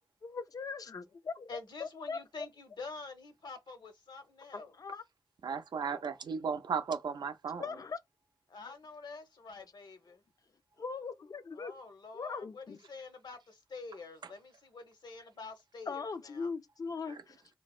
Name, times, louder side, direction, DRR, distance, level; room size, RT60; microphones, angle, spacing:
voice 1, 0.2-2.2 4.5-5.0 7.6-8.0 10.8-11.7 12.1-12.8 15.9-17.4, left 5 dB, 55° left, 0.4 m, -40 dB
voice 2, 1.5-4.7 8.5-10.2 11.6-16.5, left 3 dB, 75° left, 0.8 m, -47 dB
voice 3, 5.4-7.6 17.1-17.2, right 6 dB, 80° right, 0.4 m, -35 dB
3.2 x 2.0 x 2.3 m
cardioid pair, 55°, 7 cm